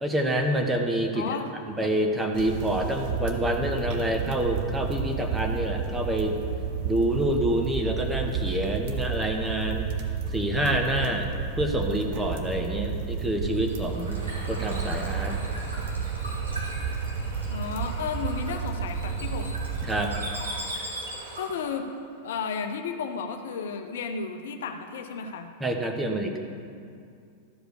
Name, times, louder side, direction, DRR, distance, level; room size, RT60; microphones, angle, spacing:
voice 1, 0.0-1.3 1.8-6.4 6.8-9.9 10.3-11.3 11.6-14.2 14.5-15.3 19.8-20.1 25.6-26.4, right 1 dB, 10° right, 3 dB, 1.2 m, -27 dB
voice 2, 1.1-1.5 17.5-19.6 21.4-21.8 22.2-25.5, left 5 dB, 65° left, 6 dB, 0.7 m, -33 dB
sound 1, 2.3-20.7, right 6 dB, 50° right, 1.0 m, -31 dB
Bird / Water, 13.3-21.7, right 1 dB, 80° right, 2.2 m, -39 dB
13.0 x 5.0 x 6.5 m, 2.4 s
figure-of-eight pair, 95°, 0 cm